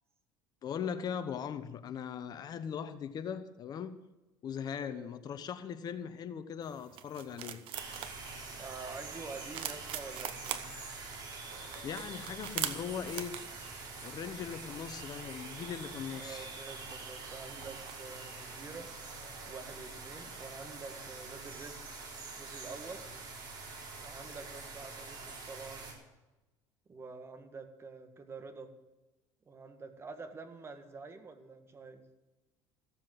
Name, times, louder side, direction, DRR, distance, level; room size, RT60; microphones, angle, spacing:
voice 1, 0.6-4.0 4.4-7.6 11.8-13.3 14.0-16.5, left 7 dB, 40° left, 11 dB, 1.0 m, -39 dB
voice 2, 4.8-5.1 8.6-10.7 16.2-18.9 19.5-21.8 22.4-23.0 24.0-25.9 26.9-28.7 29.5-32.0, right 4 dB, 25° right, 7 dB, 1.8 m, -47 dB
sound 1, 6.6-19.5, right 11 dB, 60° right, 1.1 m, -45 dB
sound 2, 7.7-25.9, right 3 dB, 45° right, 4.5 m, -45 dB
15.0 x 7.4 x 7.8 m, 1.1 s
supercardioid pair, 110°, 10 cm